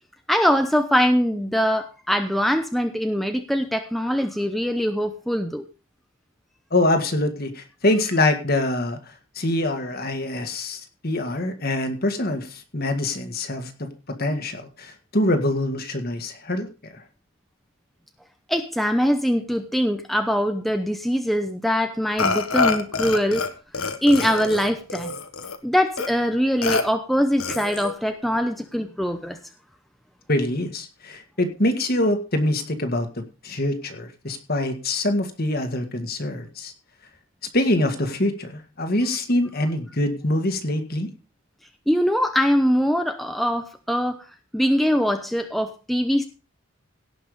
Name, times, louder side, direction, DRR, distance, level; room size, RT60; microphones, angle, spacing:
voice 1, 0.3-5.6 18.5-23.5 24.0-25.1 25.6-29.4 41.9-44.2 44.5-46.2, equal, ahead, 6 dB, 0.8 m, -22 dB
voice 2, 6.7-13.9 14.2-17.0 30.3-36.7 37.5-41.1, left 1 dB, 45° left, 6 dB, 1.9 m, -24 dB
Burping eructation, 22.2-23.5 23.7-25.6 26.0-26.1 26.6-26.8 27.4-27.9, left 4 dB, 80° left, 1.5 m, -26 dB
17.0 x 6.0 x 5.1 m, 0.33 s
head